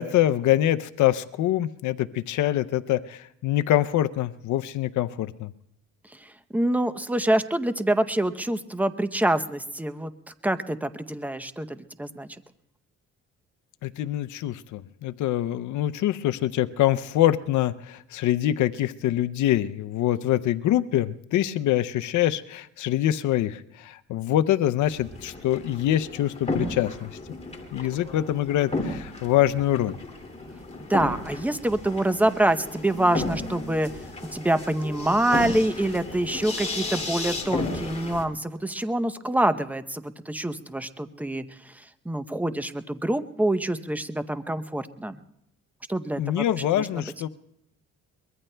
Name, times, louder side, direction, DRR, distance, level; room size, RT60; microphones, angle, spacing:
voice 1, 0.0-5.5 13.8-27.1 27.7-30.0 46.2-47.3, left 13 dB, 75° left, 12 dB, 0.6 m, -25 dB
voice 2, 6.5-10.1 10.4-12.3 30.9-33.9 34.3-41.5 42.1-45.2 45.9-46.5 46.8-46.9, right 1 dB, 5° right, 10 dB, 0.7 m, -26 dB
sound 1, 24.8-38.2, left 2 dB, 20° left, 2.4 m, -34 dB
23.5 x 22.0 x 2.2 m, 0.77 s
cardioid pair, 90°, 30 cm